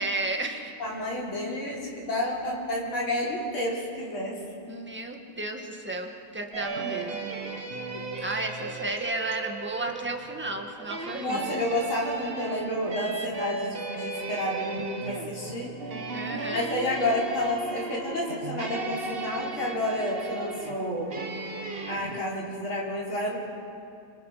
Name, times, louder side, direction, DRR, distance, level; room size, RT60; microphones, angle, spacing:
voice 1, 0.0-0.7 4.7-7.3 8.2-11.5 16.1-16.7, right 2 dB, 5° right, 3 dB, 1.4 m, -33 dB
voice 2, 0.8-4.4 7.9-8.0 11.2-15.7 16.5-21.2 21.9-23.4, left 1 dB, 70° left, -5 dB, 4.8 m, -30 dB
sound 1, 6.5-22.2, right 3 dB, 35° right, 1.2 m, -36 dB
29.0 x 26.0 x 5.1 m, 2.5 s
omnidirectional pair, 2.4 m